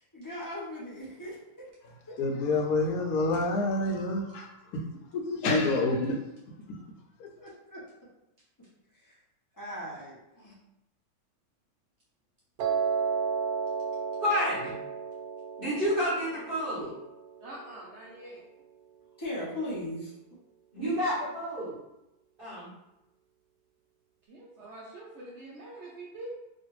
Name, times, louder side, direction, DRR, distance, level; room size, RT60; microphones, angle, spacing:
voice 1, 0.1-1.4 2.1-2.2 7.4-7.8 9.0-9.1 9.6-10.6 19.2-20.1 20.8-20.9, left 1 dB, 25° left, -6 dB, 0.4 m, -38 dB
voice 2, 2.2-4.5 5.3-6.2 7.2-7.3, left 2 dB, 75° left, 2 dB, 1.1 m, -27 dB
Piano, 12.6-18.7, right 6 dB, 90° right, 1.1 m, -33 dB
voice 3, 14.2-14.7 15.6-16.9 20.7-21.7 22.4-22.7, equal, 35° right, -12 dB, 1.2 m, -29 dB
voice 4, 17.4-18.4 24.3-26.3, right 2 dB, 65° right, -5 dB, 0.7 m, -45 dB
3.1 x 2.4 x 3.1 m, 0.90 s
omnidirectional pair, 1.7 m